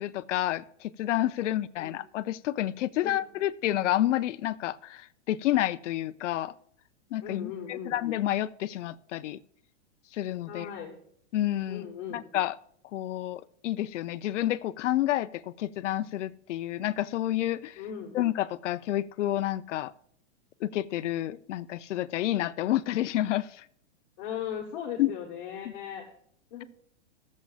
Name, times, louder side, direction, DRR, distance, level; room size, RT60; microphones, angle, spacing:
voice 1, 0.0-6.5 7.1-9.4 10.1-10.7 11.3-12.6 12.9-17.8 18.1-19.9 20.6-23.6 25.0-25.1, left 14 dB, 80° left, 15 dB, 0.6 m, -29 dB
voice 2, 7.2-8.0 10.5-11.0 11.7-12.3 17.8-18.2 24.2-26.0 26.5-26.6, left 8 dB, 45° left, 0 dB, 1.4 m, -38 dB
17.0 x 7.4 x 2.4 m, 0.65 s
supercardioid pair, 165°, 36 cm